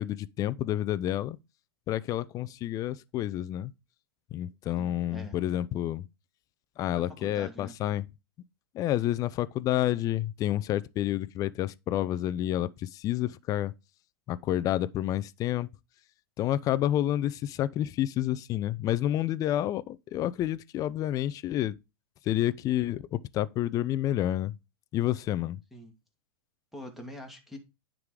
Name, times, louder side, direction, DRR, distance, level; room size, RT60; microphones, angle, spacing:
voice 1, 0.0-1.4 1.9-3.7 4.3-6.1 6.8-8.0 8.7-13.7 14.3-15.7 16.4-21.8 22.2-24.6 24.9-25.6, left 13 dB, 25° left, 0.4 m, -29 dB
voice 2, 4.8-5.4 6.9-7.7 25.7-25.9 26.7-27.6, left 1 dB, ahead, 2.0 m, -45 dB
9.5 x 3.8 x 4.8 m
hypercardioid pair, 125°, 13 cm